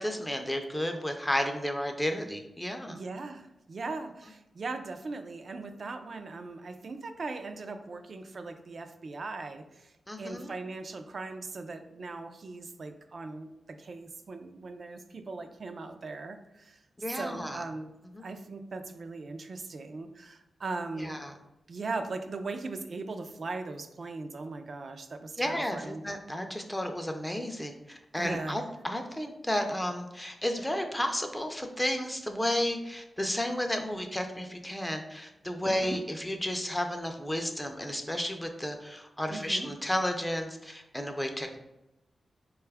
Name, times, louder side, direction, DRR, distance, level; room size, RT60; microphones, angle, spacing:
voice 1, 0.0-3.0 10.1-10.5 17.0-17.6 18.1-18.2 21.0-21.3 25.4-41.6, left 1 dB, 10° left, 5 dB, 0.4 m, -32 dB
voice 2, 2.9-16.8 17.1-17.9 18.2-21.3 21.7-26.0 28.2-28.6 35.7-36.0 39.3-39.7, right 3 dB, 55° right, 7 dB, 0.4 m, -39 dB
4.2 x 2.3 x 3.3 m, 0.92 s
wide cardioid pair, 90°, 0 cm